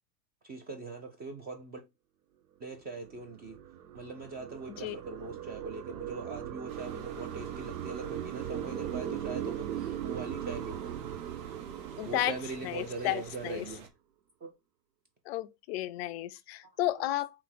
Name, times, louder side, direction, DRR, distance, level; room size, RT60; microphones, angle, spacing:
voice 1, 0.4-1.8 2.6-3.6 3.9-10.9 12.0-13.9 14.4-14.5, right 3 dB, 20° right, 0.6 m, -41 dB
sound 1, 2.8-13.4, right 10 dB, 75° right, 0.7 m, -39 dB
sound 2, 6.7-13.9, right 6 dB, 50° right, 1.1 m, -50 dB
voice 2, 12.0-12.3 12.6-13.7 15.3-17.3, left 15 dB, 40° left, 0.4 m, -33 dB
3.7 x 2.8 x 4.3 m
hypercardioid pair, 100°, 50 cm